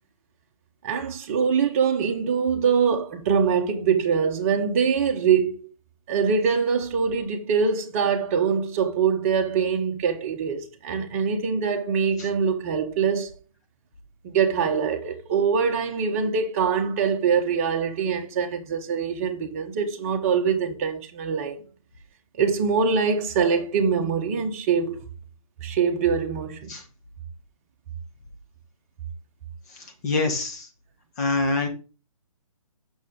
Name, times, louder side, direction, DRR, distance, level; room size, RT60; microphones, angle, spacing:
voice 1, 0.8-5.6 6.1-13.3 14.2-21.6 22.4-25.0 25.6-26.8, right 6 dB, 25° right, 1.2 m, -23 dB
voice 2, 29.8-30.7 31.2-31.7, left 3 dB, 30° left, 1.9 m, -25 dB
9.1 x 6.4 x 3.7 m
figure-of-eight pair, 140°, 18 cm